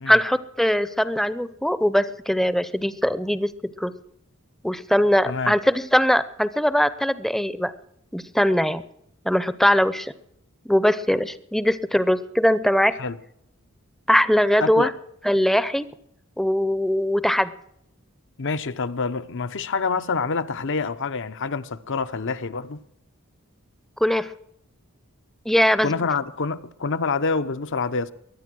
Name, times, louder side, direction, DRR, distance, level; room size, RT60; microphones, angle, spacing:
voice 1, 0.1-3.5 3.8-3.9 4.6-7.7 8.1-8.8 9.2-10.1 10.7-12.9 14.1-14.9 15.2-15.9 16.4-17.5 24.0-24.3 25.5-25.9, equal, ahead, 0.6 m, -21 dB
voice 2, 18.4-22.8 25.8-28.1, left 4 dB, 60° left, 0.8 m, -27 dB
22.5 x 9.4 x 6.2 m
head